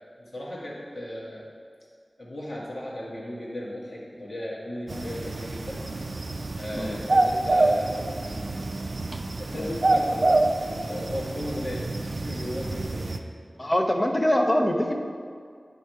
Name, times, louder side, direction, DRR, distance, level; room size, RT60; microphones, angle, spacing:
voice 1, 0.2-1.5 2.2-5.8 6.5-8.4 9.4-13.2 13.6-13.7, left 1 dB, 75° left, -6 dB, 1.8 m, -36 dB
sound 1, 4.9-13.2, right 2 dB, 65° right, 0.4 m, -27 dB
voice 2, 13.6-14.9, left 1 dB, 30° left, 2 dB, 0.7 m, -24 dB
9.9 x 3.6 x 4.6 m, 2.2 s
wide cardioid pair, 55°, 0 cm